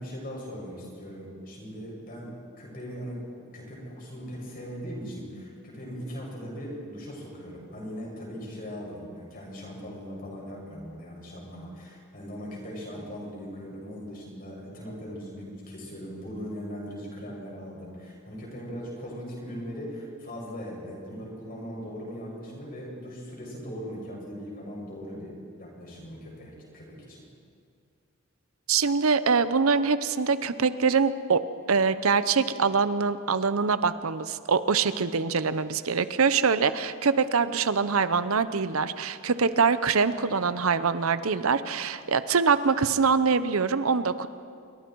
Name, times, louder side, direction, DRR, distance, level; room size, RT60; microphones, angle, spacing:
voice 1, 0.0-2.3 2.6-3.2 3.5-27.2, equal, 45° left, -2 dB, 7.1 m, -39 dB
voice 2, 28.7-31.4 31.7-44.3, right 5 dB, 80° right, 13 dB, 0.8 m, -24 dB
27.0 x 23.5 x 4.7 m, 2.3 s
head